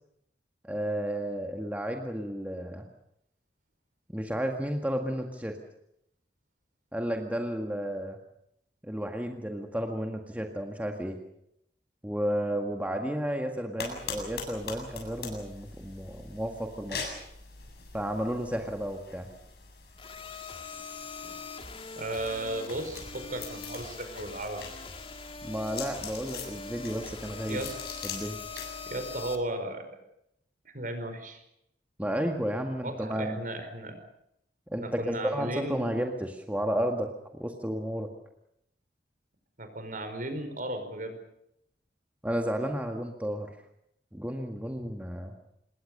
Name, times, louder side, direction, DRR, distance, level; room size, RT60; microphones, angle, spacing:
voice 1, 0.6-2.9 4.1-5.6 6.9-8.2 8.8-11.2 12.0-17.2 17.9-19.3 25.4-27.6 28.0-28.4 32.0-33.4 34.7-38.1 42.2-43.5 44.1-45.3, equal, 10° right, 3 dB, 1.9 m, -32 dB
sound 1, 13.8-29.4, left 4 dB, 65° left, 7.7 m, -43 dB
sound 2, 20.0-29.4, left 4 dB, 30° left, 2.1 m, -42 dB
voice 2, 21.9-24.7 27.5-27.8 28.9-29.9 30.6-31.4 32.8-34.0 34.8-35.9 39.6-41.2, right 1 dB, 50° right, 7 dB, 5.1 m, -35 dB
26.5 x 21.0 x 6.7 m, 0.77 s
head